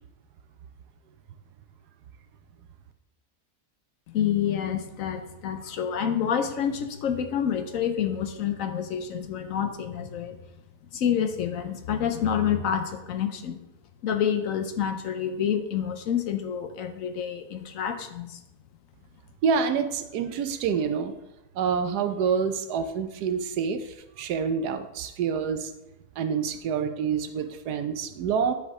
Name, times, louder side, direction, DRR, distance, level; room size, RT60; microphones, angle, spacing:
voice 1, 4.1-10.4 10.9-13.6 14.0-18.4, left 8 dB, 65° left, 8 dB, 1.0 m, -28 dB
voice 2, 19.4-21.1 21.5-25.7 26.2-28.5, right 6 dB, 85° right, 8 dB, 1.2 m, -27 dB
10.5 x 4.8 x 3.6 m, 0.92 s
omnidirectional pair, 1.7 m